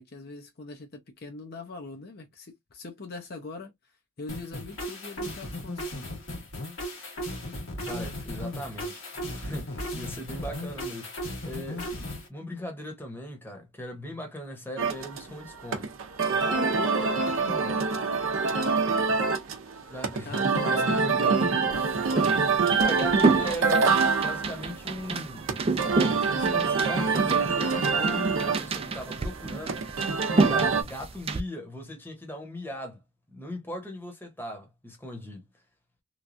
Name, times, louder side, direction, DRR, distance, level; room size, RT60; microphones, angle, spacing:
voice 1, 0.0-3.7 4.2-6.1 20.2-22.0 22.6-23.3, left 3 dB, 50° left, 0.7 m, -42 dB
sound 1, 4.3-12.3, equal, 85° left, 1.4 m, -36 dB
voice 2, 7.9-9.0 9.3-11.1 11.4-11.9 12.3-15.9 16.4-17.8 19.9-20.4 20.7-21.7 22.8-25.5 26.2-33.0 33.3-35.4, equal, 10° left, 0.9 m, -38 dB
sound 2, 14.8-30.8, right 4 dB, 75° right, 0.6 m, -26 dB
sound 3, 21.7-31.4, right 3 dB, 30° right, 0.4 m, -30 dB
3.1 x 2.2 x 2.5 m
head